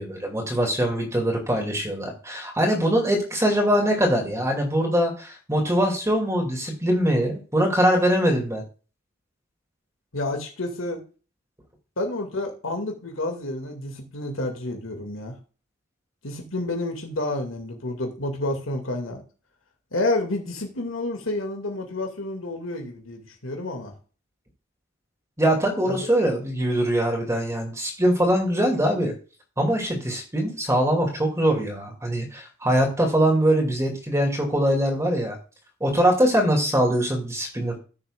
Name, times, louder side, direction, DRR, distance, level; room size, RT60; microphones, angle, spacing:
voice 1, 0.0-8.6 25.4-29.1 29.6-35.4 35.8-37.8, equal, 15° right, 0 dB, 2.5 m, -22 dB
voice 2, 10.1-11.0 12.0-15.4 16.2-19.2 19.9-23.9 25.9-26.0, left 2 dB, 90° left, 2 dB, 2.3 m, -29 dB
14.5 x 6.6 x 2.4 m, 0.35 s
head